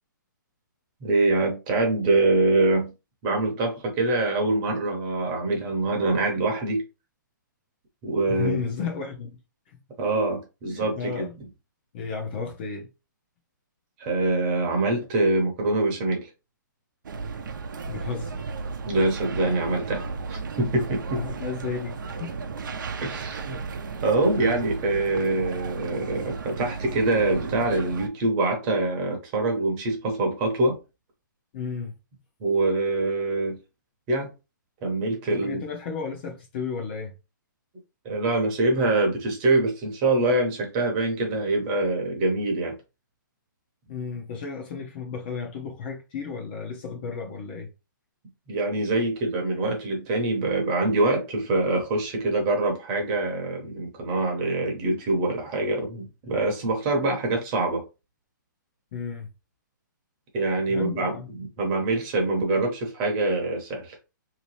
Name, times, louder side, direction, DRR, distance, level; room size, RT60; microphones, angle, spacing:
voice 1, 1.0-2.9 3.2-6.8 8.0-8.6 10.0-11.3 14.0-16.3 18.8-21.2 23.0-23.6 24.0-30.8 32.4-33.6 34.1-34.3 34.8-35.6 38.0-42.7 48.5-57.8 60.3-63.9, right 2 dB, 25° right, 0.9 m, -24 dB
voice 2, 8.3-9.4 9.7-9.8 10.6-11.3 11.9-12.9 17.9-18.4 21.1-22.4 31.5-31.9 35.3-37.1 43.9-47.7 58.9-59.3 60.7-61.3, left 5 dB, 30° left, 0.7 m, -33 dB
sound 1, 17.0-28.1, right 4 dB, 70° right, 0.6 m, -34 dB
3.3 x 2.9 x 3.1 m
hypercardioid pair, 165°, 11 cm